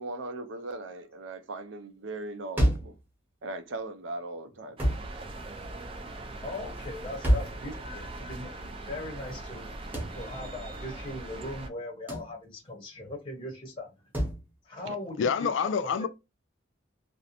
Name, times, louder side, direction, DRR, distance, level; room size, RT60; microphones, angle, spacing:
voice 1, 0.0-3.0 3.4-4.8 14.8-15.0, right 2 dB, 85° right, 0.5 m, -38 dB
sound 1, 2.6-3.0 4.8-5.1 7.2-7.6 9.9-10.2 12.1-12.3 14.1-14.4, equal, 10° right, 0.8 m, -26 dB
sound 2, 4.8-11.7, right 2 dB, 30° right, 0.4 m, -41 dB
voice 2, 6.4-9.7 10.1-13.9 14.6-16.1, left 2 dB, 25° left, 0.7 m, -39 dB
voice 3, 15.2-16.1, left 6 dB, 75° left, 0.3 m, -27 dB
2.5 x 2.0 x 2.8 m
head